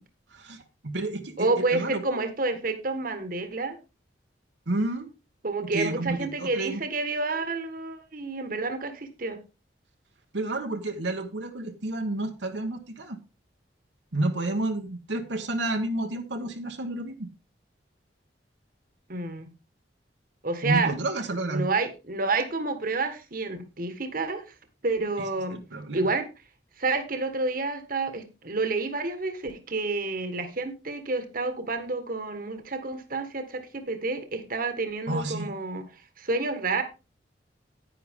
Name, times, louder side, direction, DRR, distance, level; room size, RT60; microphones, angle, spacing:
voice 1, 0.3-2.0 4.7-5.1 5.7-6.8 10.3-13.2 14.1-17.3 20.6-21.6 25.2-26.0 35.1-35.5, right 2 dB, 75° right, 4 dB, 1.3 m, -30 dB
voice 2, 1.4-3.8 5.4-9.4 19.1-19.5 20.4-20.9 21.5-24.4 24.8-25.6 25.9-26.3 26.8-35.9 36.2-36.8, right 3 dB, 50° right, 8 dB, 1.5 m, -29 dB
10.0 x 9.6 x 3.7 m, 0.29 s
head